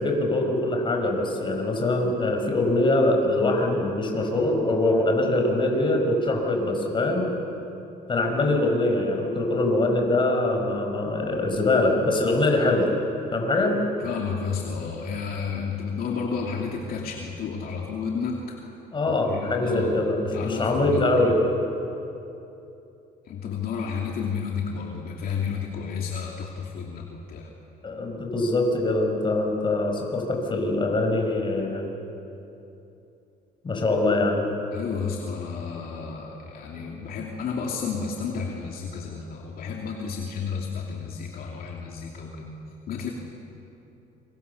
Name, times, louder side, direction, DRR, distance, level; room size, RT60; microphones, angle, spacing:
voice 1, 0.0-7.3 8.1-12.9 13.3-13.8 18.9-21.4 27.8-31.9 33.6-34.4, left 2 dB, 30° left, 2 dB, 5.4 m, -23 dB
voice 2, 14.0-18.6 19.1-21.3 23.3-27.5 34.7-42.6 42.9-43.1, left 5 dB, 60° left, -1 dB, 2.7 m, -31 dB
27.5 x 25.0 x 7.0 m, 2.9 s
cardioid pair, 110°, 17 cm